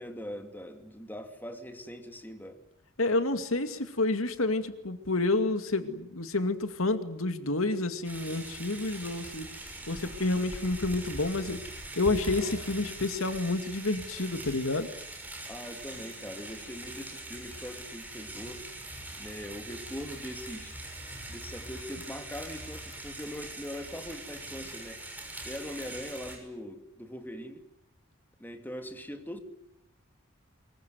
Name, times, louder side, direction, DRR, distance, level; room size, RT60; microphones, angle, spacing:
voice 1, 0.0-2.6 15.5-18.6 19.2-20.8 21.3-25.0 25.4-27.6 28.4-29.4, equal, 10° left, 2.6 m, -41 dB
voice 2, 3.0-9.5 9.9-11.6 12.0-14.9, left 2 dB, 80° left, 2.3 m, -29 dB
sound 1, 8.0-26.4, right 1 dB, 10° right, 6.6 m, -42 dB
24.5 x 23.0 x 9.5 m
head